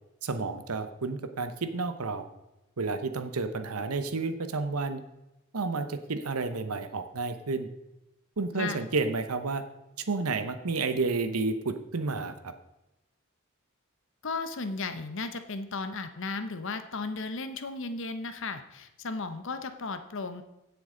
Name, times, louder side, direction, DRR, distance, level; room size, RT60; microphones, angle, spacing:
voice 1, 0.2-2.2 2.8-5.0 5.5-7.7 8.4-9.6 10.1-12.5, right 3 dB, 85° right, 9 dB, 0.9 m, -31 dB
voice 2, 14.2-20.4, left 3 dB, 60° left, 9 dB, 0.8 m, -35 dB
16.0 x 6.9 x 3.9 m, 0.94 s
head